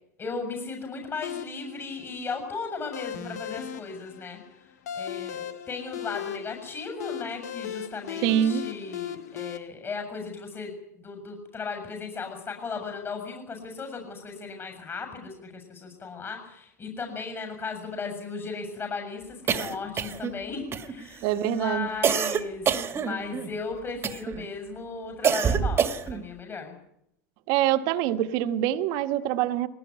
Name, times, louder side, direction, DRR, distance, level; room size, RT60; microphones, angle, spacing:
voice 1, 0.2-4.4 4.9-26.7, left 4 dB, 25° left, 7.3 m, -36 dB
sound 1, 1.2-9.6, left 10 dB, 80° left, 2.2 m, -37 dB
voice 2, 8.2-8.7 21.2-21.9 27.5-29.7, right 12 dB, 55° right, 1.6 m, -25 dB
sound 2, 19.5-20.4 20.7-21.2 22.0-23.5 24.0-24.5 25.2-26.3, right 7 dB, 30° right, 2.0 m, -26 dB
21.5 x 18.5 x 9.6 m
hypercardioid pair, 105°, 9 cm